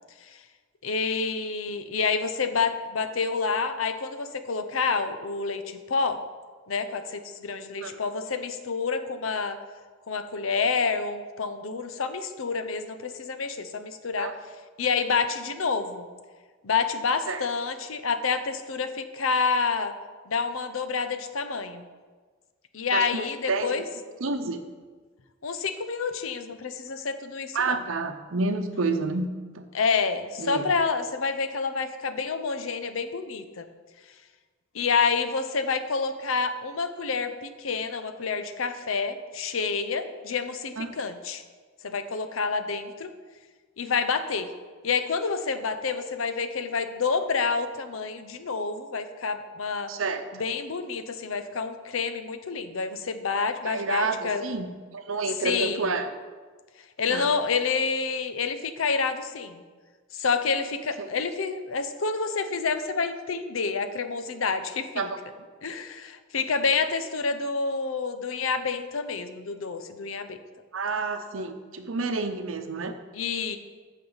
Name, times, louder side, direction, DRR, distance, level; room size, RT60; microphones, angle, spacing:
voice 1, 0.8-6.2 6.7-9.6 10.1-14.3 14.8-16.1 16.6-19.9 20.3-21.8 22.7-23.9 25.4-27.8 29.7-33.7 34.7-41.4 41.8-43.1 43.8-44.5 44.8-49.9 50.3-54.5 55.4-55.9 57.0-59.6 60.1-65.1 65.6-70.4 73.1-73.6, left 5 dB, 85° left, 9 dB, 0.7 m, -28 dB
voice 2, 22.9-23.8 24.2-24.6 27.5-29.3 29.5-29.6 30.4-30.7 40.8-40.9 49.9-50.5 53.6-54.7 54.9-56.1 57.1-57.3 61.0-61.1 65.0-65.2 70.7-73.0, right 3 dB, 80° right, 8 dB, 0.8 m, -29 dB
14.5 x 5.5 x 4.0 m, 1.4 s
head